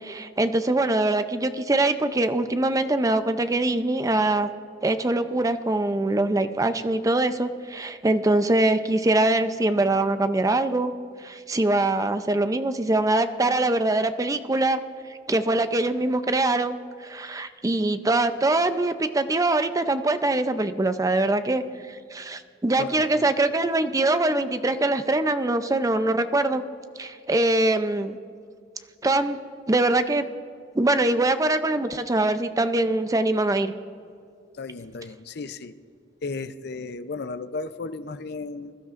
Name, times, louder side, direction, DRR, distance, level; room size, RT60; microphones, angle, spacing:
voice 1, 0.0-4.5 4.8-10.9 11.2-14.8 15.3-26.6 27.0-28.2 29.0-29.4 29.7-30.3 30.7-33.7, right 2 dB, 20° right, 10 dB, 0.5 m, -23 dB
voice 2, 22.8-23.3 34.6-35.8 36.2-38.8, left 3 dB, 60° left, 12 dB, 0.5 m, -34 dB
23.0 x 12.0 x 2.5 m, 2.3 s
head